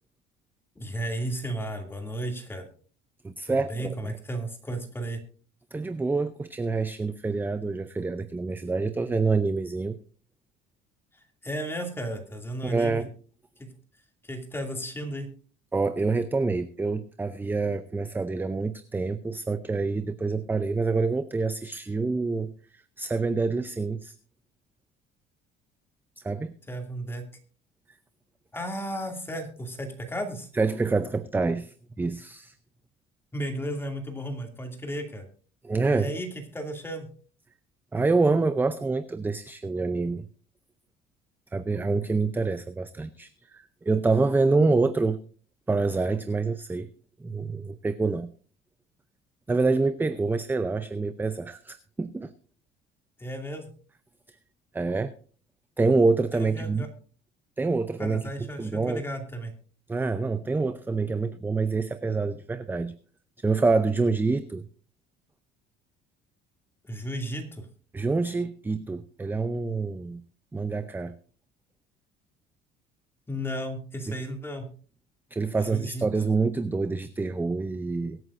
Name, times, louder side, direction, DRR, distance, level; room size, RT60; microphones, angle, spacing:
voice 1, 0.8-2.6 3.7-5.2 11.4-13.0 13.6-13.7 14.2-15.3 26.7-27.2 28.5-30.5 33.3-35.3 35.9-36.3 36.5-37.1 53.2-53.7 56.3-56.9 58.0-59.5 66.9-67.7 73.3-74.7 75.7-76.0, right 1 dB, 10° left, 4 dB, 2.5 m, -34 dB
voice 2, 3.2-4.2 5.7-9.9 12.6-13.1 15.7-24.1 26.2-26.5 30.5-32.5 35.6-36.1 37.9-40.3 41.5-45.2 45.7-46.9 47.2-48.3 49.5-52.3 54.7-55.1 55.8-56.8 57.6-59.0 59.9-62.9 63.4-64.6 67.9-70.2 70.5-71.1 74.1-74.2 75.3-78.2, right 3 dB, 10° right, 11 dB, 0.5 m, -26 dB
23.0 x 9.1 x 2.5 m, 0.42 s
cardioid pair, 135°, 20 cm